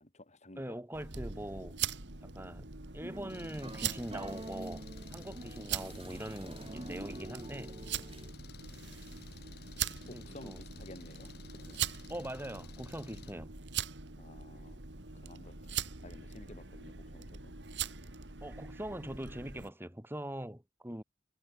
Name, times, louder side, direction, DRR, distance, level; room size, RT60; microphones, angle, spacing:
voice 1, 0.0-0.8 10.1-11.9 14.2-14.9 15.2-15.6 16.0-17.5, left 1 dB, 40° left, 3.7 m, -53 dB
voice 2, 0.6-1.8 2.2-7.7 10.0-10.6 12.1-13.6 18.4-21.0, right 1 dB, 15° right, 5.1 m, -42 dB
sound 1, 0.9-19.7, right 7 dB, 85° right, 2.7 m, -42 dB
sound 2, 3.0-8.3, right 2 dB, 30° right, 1.2 m, -47 dB
Engine, 3.3-13.3, left 4 dB, 65° left, 1.7 m, -54 dB
head